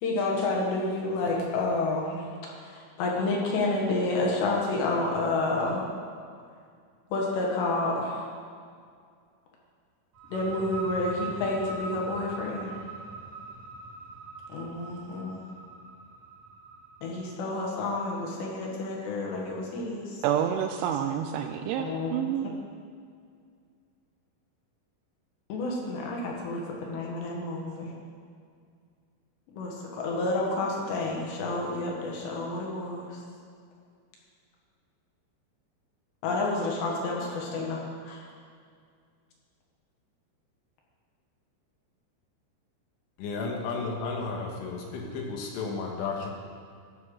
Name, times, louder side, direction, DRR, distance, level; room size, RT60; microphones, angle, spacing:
voice 1, 0.0-5.8 7.1-8.3 10.3-12.8 14.5-15.4 17.0-20.2 21.8-22.1 25.5-28.0 29.6-33.2 36.2-38.3, left 2 dB, 70° left, -2 dB, 3.3 m, -30 dB
sound 1, 10.1-17.6, right 2 dB, 55° right, 2.2 m, -41 dB
voice 2, 20.2-22.5, right 9 dB, 85° right, 5 dB, 2.8 m, -28 dB
voice 3, 43.2-46.3, left 4 dB, 90° left, 0 dB, 3.8 m, -33 dB
14.5 x 5.6 x 6.4 m, 2.2 s
omnidirectional pair, 5.6 m